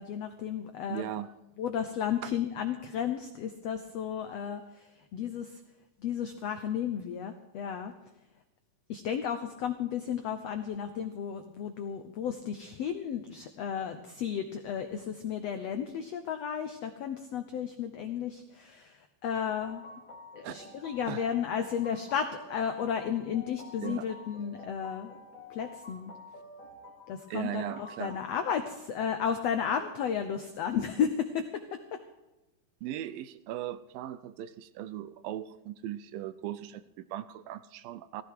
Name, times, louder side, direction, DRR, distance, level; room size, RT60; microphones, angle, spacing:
voice 1, 0.0-1.1 1.6-5.6 6.0-7.9 8.9-19.8 20.4-25.1 25.5-26.1 27.1-32.0, left 8 dB, 90° left, 8 dB, 1.4 m, -33 dB
voice 2, 0.9-1.3 2.2-2.3 20.4-20.6 21.1-21.2 23.8-24.1 27.3-28.2 32.8-38.2, right 12 dB, 80° right, 14 dB, 2.3 m, -38 dB
sound 1, 19.6-28.5, left 2 dB, 50° left, 0.9 m, -49 dB
18.0 x 15.0 x 4.8 m, 1.0 s
omnidirectional pair, 4.2 m